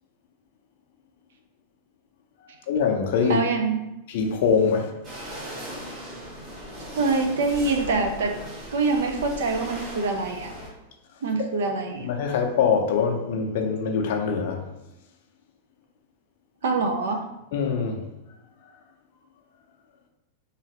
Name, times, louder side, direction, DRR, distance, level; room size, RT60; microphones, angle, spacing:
voice 1, 2.7-3.4 4.1-4.9 12.0-14.6 17.5-18.0, left 6 dB, 65° left, 2 dB, 0.4 m, -23 dB
voice 2, 3.2-3.9 7.0-8.4 8.7-10.5 11.2-12.1 16.6-17.2, right 3 dB, 75° right, 5 dB, 0.5 m, -25 dB
sound 1, 5.0-10.7, right 1 dB, 40° right, 1.2 m, -38 dB
2.8 x 2.4 x 2.9 m, 0.97 s
hypercardioid pair, 115°, 0 cm